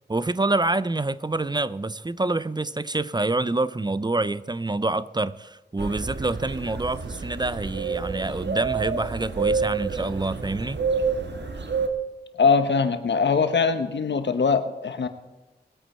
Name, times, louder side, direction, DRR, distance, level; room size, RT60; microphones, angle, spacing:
voice 1, 0.1-10.8, right 2 dB, 25° right, 0.5 m, -27 dB
sound 1, 5.8-11.9, right 5 dB, 80° right, 1.4 m, -28 dB
voice 2, 12.4-15.1, left 5 dB, 80° left, 1.1 m, -22 dB
20.0 x 8.8 x 4.4 m
cardioid pair, 45°, 18 cm